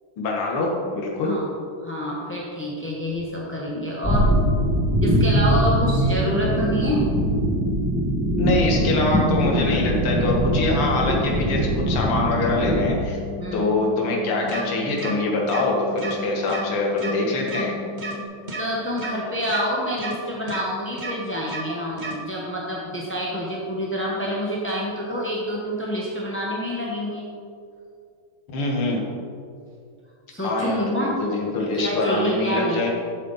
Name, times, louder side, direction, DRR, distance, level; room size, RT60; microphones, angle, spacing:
voice 1, 0.2-1.4 8.4-13.2 13.5-17.8 28.5-29.1 30.4-32.9, left 2 dB, 80° left, -1 dB, 2.4 m, -24 dB
voice 2, 1.8-4.3 5.0-7.1 13.4-13.7 18.6-27.3 30.3-31.2 31.7-32.9, equal, 10° left, -4 dB, 0.6 m, -27 dB
sound 1, 4.0-12.9, right 1 dB, 5° right, 1.2 m, -22 dB
sound 2, 6.2-18.2, left 3 dB, 65° right, 1.4 m, -37 dB
sound 3, 14.5-14.6 15.0-15.1 15.5-15.6 16.0-16.1 16.5-16.6 17.0-17.1 17.5-17.6 18.0-18.1 18.5-18.6 19.0-19.1 19.5-19.6 20.0-20.1 20.5-20.6 21.0-21.1 21.5-21.6 22.0-22.1, right 3 dB, 25° right, 1.1 m, -31 dB
12.0 x 7.7 x 4.1 m, 2.4 s
omnidirectional pair, 2.4 m